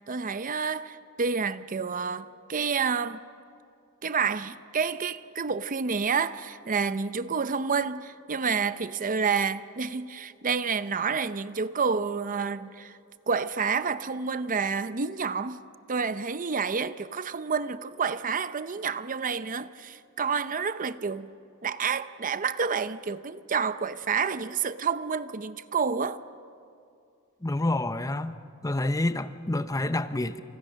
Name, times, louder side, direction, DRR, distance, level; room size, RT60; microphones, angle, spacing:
voice 1, 0.0-3.2 4.0-13.0 13.3-15.6 15.9-21.3 21.6-26.2, right 5 dB, 40° right, 0.7 m, -29 dB
voice 2, 27.4-28.4 28.6-30.4, left 2 dB, 15° left, 0.7 m, -28 dB
30.0 x 28.5 x 6.4 m
head